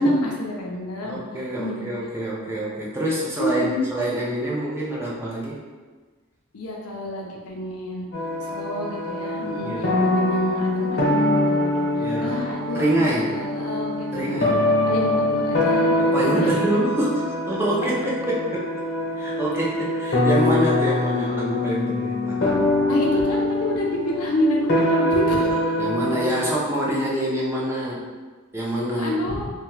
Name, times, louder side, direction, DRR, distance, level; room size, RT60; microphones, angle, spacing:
voice 1, 0.0-1.2 1.6-1.8 3.4-3.9 6.5-8.1 8.4-16.5 22.9-25.7 29.0-29.5, left 1 dB, 85° left, -1 dB, 0.5 m, -28 dB
voice 2, 1.0-5.6 9.6-9.9 12.0-12.4 12.7-13.4 14.1-14.6 16.0-18.7 19.2-22.5 25.8-28.0 28.5-29.2, right 1 dB, 10° right, -6 dB, 0.4 m, -26 dB
sound 1, 8.1-26.6, left 1 dB, 50° left, 0.9 m, -23 dB
2.7 x 2.2 x 3.0 m, 1.4 s
head